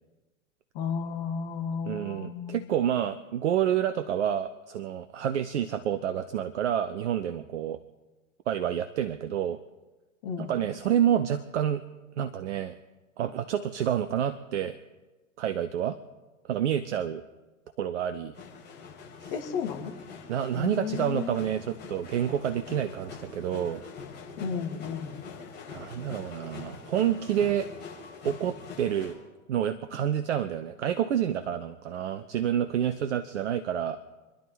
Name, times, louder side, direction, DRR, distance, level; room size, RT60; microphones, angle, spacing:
voice 1, 0.7-2.7 10.2-10.5 19.3-19.9 20.5-21.4 24.4-25.1, left 6 dB, 45° left, 3 dB, 2.3 m, -33 dB
voice 2, 1.9-7.8 8.5-9.6 10.4-11.8 12.2-12.8 13.2-14.8 15.4-16.0 16.5-17.2 17.8-18.3 19.2-19.3 20.3-23.8 25.7-27.7 28.2-29.1 29.5-34.0, right 10 dB, 55° right, 11 dB, 0.9 m, -28 dB
sound 1, 18.3-29.1, left 5 dB, 25° left, 6.2 m, -44 dB
29.0 x 11.0 x 4.0 m, 1.2 s
figure-of-eight pair, 95°, 41 cm